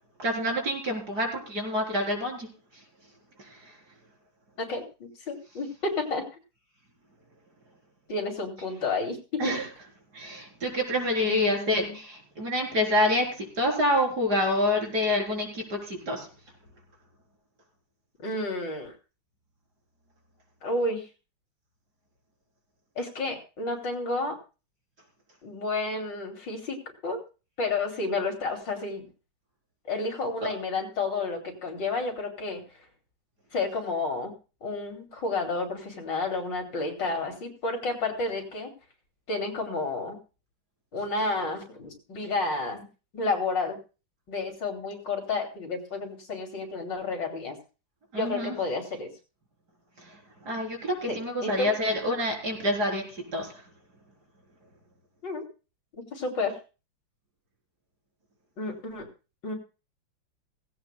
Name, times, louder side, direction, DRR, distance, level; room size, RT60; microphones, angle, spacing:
voice 1, 0.2-2.5 3.5-3.7 9.4-9.6 10.1-16.3 48.1-48.5 50.0-50.2 50.4-53.6, left 1 dB, 55° right, 1 dB, 4.7 m, -27 dB
voice 2, 4.6-6.2 8.1-9.6 11.2-12.0 18.2-18.9 20.6-21.1 23.0-24.4 25.4-26.8 27.0-27.2 27.6-29.1 29.9-32.6 33.5-34.3 34.6-38.7 39.3-40.2 40.9-42.9 43.1-43.8 44.3-47.6 48.1-49.1 51.1-51.7 55.2-55.4 55.9-56.6 58.6-59.1 59.4-59.5, left 3 dB, 65° left, 3 dB, 3.6 m, -31 dB
17.5 x 16.5 x 2.3 m, 0.33 s
omnidirectional pair, 2.1 m